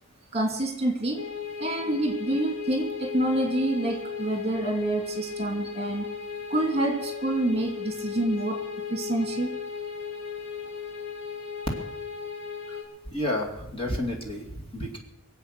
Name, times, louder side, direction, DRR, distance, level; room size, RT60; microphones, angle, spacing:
voice 1, 0.3-1.2 1.6-6.1 6.5-8.6 8.9-9.6, right 1 dB, 25° right, 3 dB, 2.6 m, -27 dB
sound 1, 1.2-12.8, left 6 dB, 55° left, 3.9 m, -36 dB
voice 2, 13.1-15.0, left 1 dB, 25° left, -1 dB, 2.3 m, -31 dB
23.5 x 8.2 x 6.6 m, 0.92 s
head